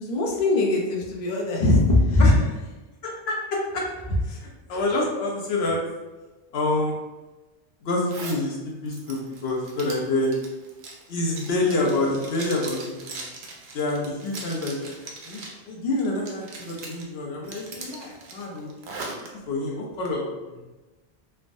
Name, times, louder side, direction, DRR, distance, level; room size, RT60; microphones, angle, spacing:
voice 1, 0.0-2.3, left 2 dB, 50° left, -2 dB, 0.6 m, -20 dB
voice 2, 3.0-3.9 4.2-5.8 6.5-7.0 7.8-10.3 11.1-13.2 13.7-14.9 15.2-18.7 19.5-20.6, left 2 dB, 75° left, -2 dB, 0.9 m, -27 dB
Zipper (clothing), 8.1-8.4 8.9-15.6 16.0-17.0 17.4-19.3, right 3 dB, 80° right, 0.8 m, -40 dB
3.3 x 2.1 x 2.5 m, 1.2 s
omnidirectional pair, 1.0 m